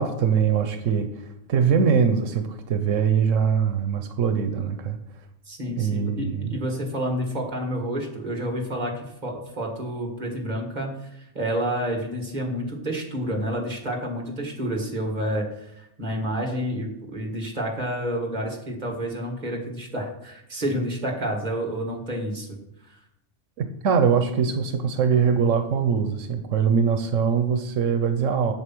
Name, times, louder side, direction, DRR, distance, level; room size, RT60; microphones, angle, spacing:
voice 1, 0.0-5.0 5.7-6.6 23.6-28.5, right 6 dB, 90° right, 7 dB, 1.2 m, -22 dB
voice 2, 5.5-22.6 22.8-23.0, equal, 35° right, 1 dB, 2.1 m, -29 dB
8.1 x 7.5 x 6.1 m, 0.81 s
omnidirectional pair, 1.3 m